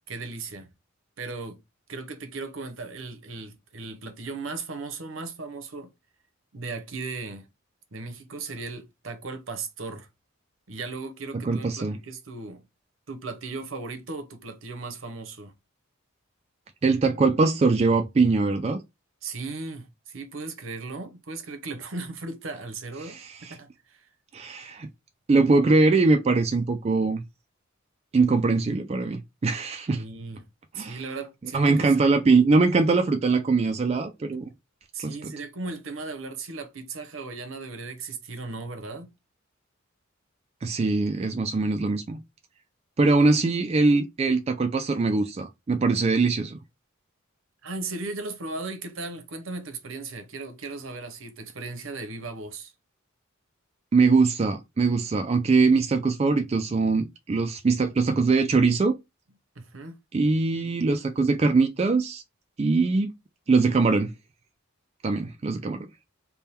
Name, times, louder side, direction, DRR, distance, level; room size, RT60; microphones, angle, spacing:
voice 1, 0.1-0.7 1.2-1.6 1.9-5.9 6.5-7.5 7.9-10.1 10.7-12.7 13.1-15.5 19.2-24.1 30.0-30.4 30.7-31.9 34.9-39.1 47.6-52.7 59.5-60.0, right 3 dB, 70° right, 0.8 m, -37 dB
voice 2, 11.4-12.0 16.8-18.8 23.0-23.5 24.3-24.9 25.3-27.2 28.1-30.0 30.8-31.0 31.5-34.5 35.0-35.3 40.6-42.2 43.0-46.6 53.9-59.0 60.1-62.2 62.6-63.1 63.5-64.1 65.0-65.9, right 3 dB, 30° right, 0.3 m, -22 dB
3.5 x 2.2 x 4.2 m
head